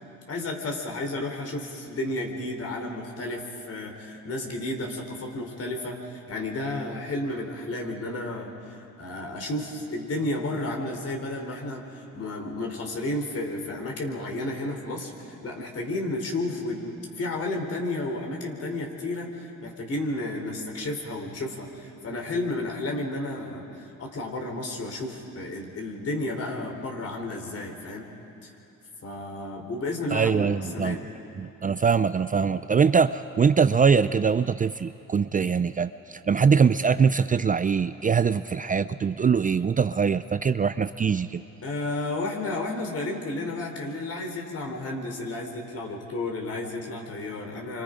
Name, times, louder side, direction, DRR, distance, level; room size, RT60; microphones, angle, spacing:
voice 1, 0.3-23.6 24.0-28.1 29.0-31.1 41.6-47.8, left 2 dB, 50° left, 2 dB, 3.9 m, -32 dB
voice 2, 30.1-31.0 31.4-41.4, right 6 dB, 25° right, 12 dB, 0.5 m, -23 dB
29.5 x 25.5 x 5.1 m, 2.8 s
cardioid pair, 90°, 30 cm